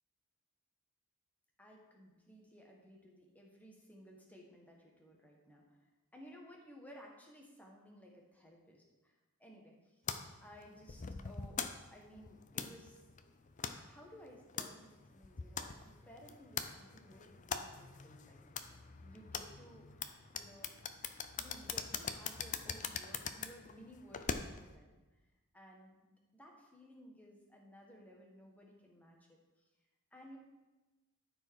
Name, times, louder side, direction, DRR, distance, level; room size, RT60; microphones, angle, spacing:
voice 1, 1.6-5.8 6.1-9.1 9.4-10.0 10.4-13.0 13.6-18.7 19.0-21.0 21.3-25.0 25.5-29.7 30.1-30.4, equal, 5° left, -1 dB, 1.5 m, -58 dB
sound 1, 10.1-24.8, left 6 dB, 35° left, 0.5 m, -43 dB
12.5 x 4.7 x 4.7 m, 1.1 s
head